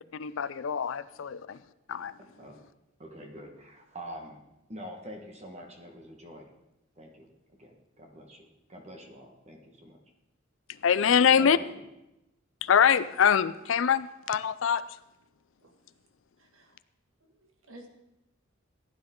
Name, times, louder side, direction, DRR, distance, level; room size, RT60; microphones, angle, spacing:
voice 1, 0.2-1.6 1.9-2.1 10.8-11.6 12.6-14.8, left 7 dB, 65° left, 15 dB, 0.4 m, -24 dB
voice 2, 2.2-2.6 3.0-4.4 4.7-6.5 7.0-7.3 7.6-10.0 11.4-11.8, equal, 30° right, 3 dB, 1.5 m, -45 dB
voice 3, 16.4-16.8 17.2-17.9, right 1 dB, 75° right, 3 dB, 2.0 m, -53 dB
15.5 x 10.0 x 3.8 m, 0.92 s
head